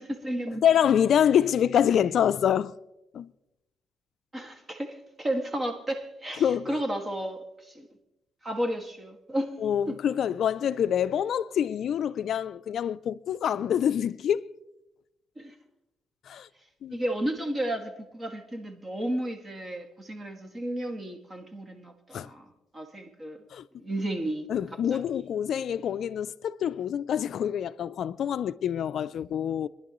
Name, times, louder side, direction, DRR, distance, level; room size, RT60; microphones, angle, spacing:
voice 1, 0.0-0.6 4.3-7.9 8.4-9.5 9.9-10.0 15.4-15.5 16.9-22.5 22.7-23.4 23.8-24.5, right 1 dB, 25° right, 1.9 m, -33 dB
voice 2, 0.6-2.7 3.1-3.3 6.4-6.8 9.6-14.5 16.3-16.5 16.8-17.0 22.1-22.3 23.5-23.6 24.5-29.7, left 9 dB, 65° left, 0.4 m, -26 dB
24.5 x 11.0 x 3.1 m
cardioid pair, 90°, 0 cm